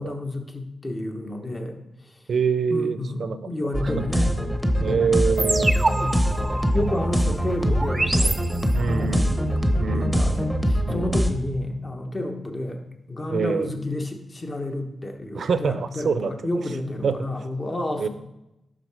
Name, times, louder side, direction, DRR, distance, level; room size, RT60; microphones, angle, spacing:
voice 1, 0.0-2.2 2.7-4.4 4.8-5.1 6.0-6.3 6.7-8.4 8.9-9.3 9.7-18.1, left 1 dB, 30° left, 4 dB, 1.2 m, -31 dB
voice 2, 2.3-3.4 3.8-4.0 4.8-5.7 6.8-7.0 8.7-9.4 9.8-10.3 10.8-11.2 13.3-13.7 15.3-16.3 17.0-17.2 18.0-18.1, right 5 dB, 65° right, 12 dB, 0.6 m, -25 dB
sound 1, 3.7-11.3, equal, ahead, 0.9 m, -23 dB
sound 2, 5.4-9.0, right 2 dB, 25° right, 0.6 m, -28 dB
11.5 x 3.9 x 4.8 m, 0.91 s
cardioid pair, 85°, 0 cm